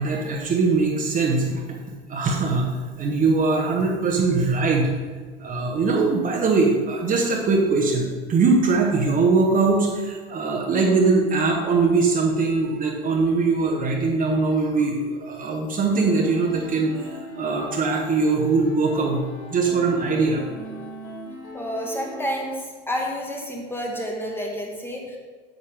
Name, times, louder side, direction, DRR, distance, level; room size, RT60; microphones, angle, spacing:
voice 1, 0.0-4.9 5.4-19.2 19.5-20.4, right 3 dB, 25° right, 0 dB, 1.2 m, -21 dB
sound 1, 15.9-22.5, left 1 dB, 55° left, 2.0 m, -39 dB
voice 2, 21.5-25.2, equal, 5° left, -1 dB, 1.6 m, -29 dB
9.0 x 6.9 x 3.5 m, 1.4 s
figure-of-eight pair, 80°, 31 cm